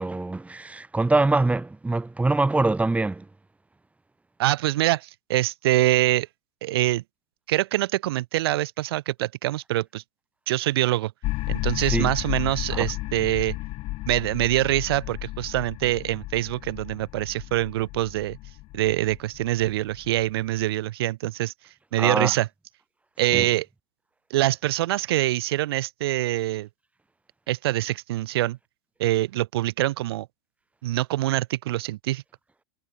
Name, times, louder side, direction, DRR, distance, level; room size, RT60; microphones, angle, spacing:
voice 1, 0.0-3.3 11.8-12.1 12.7-12.9 22.0-22.3 23.3-23.5, right 2 dB, 10° right, 7.6 m, -24 dB
voice 2, 4.4-6.3 6.6-7.0 7.5-10.0 10.5-11.1 11.5-13.6 14.1-18.4 18.7-21.5 21.9-22.5 23.2-23.7 24.3-26.7 27.5-28.6 29.0-30.3 30.8-32.2, right 16 dB, 70° right, 2.5 m, -24 dB
sound 1, 11.2-20.6, left 20 dB, 50° left, 4.0 m, -33 dB
hypercardioid pair, 95°, 13 cm